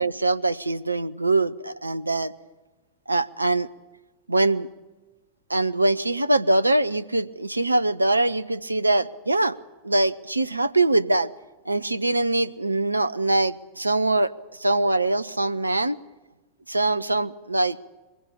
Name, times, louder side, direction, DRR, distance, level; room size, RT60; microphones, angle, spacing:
voice 1, 0.0-2.3 3.1-3.7 4.3-4.7 5.5-9.6 9.8-11.3 11.7-14.3 14.6-16.0 16.7-17.8, right 2 dB, 85° right, 15 dB, 0.7 m, -23 dB
22.0 x 16.0 x 8.6 m, 1.2 s
figure-of-eight pair, 90°, 0 cm